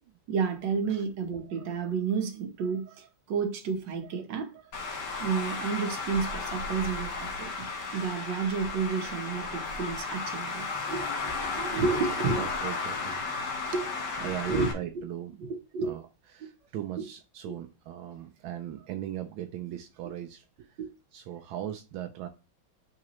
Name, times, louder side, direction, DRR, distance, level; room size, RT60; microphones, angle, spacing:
voice 1, 0.3-4.5 5.2-7.7 7.9-12.5 13.7-13.8 14.5-14.7 14.9-15.0 15.7-15.9 16.4-16.5 20.8-20.9, right 5 dB, 65° right, 1.7 m, -31 dB
Traffic noise roadway noise, 4.7-14.7, left 4 dB, 60° left, 1.8 m, -34 dB
voice 2, 11.7-13.2 14.2-15.4 15.8-16.0 16.3-20.8 21.1-22.3, right 11 dB, 85° right, 1.5 m, -38 dB
8.5 x 3.8 x 3.1 m
omnidirectional pair, 2.2 m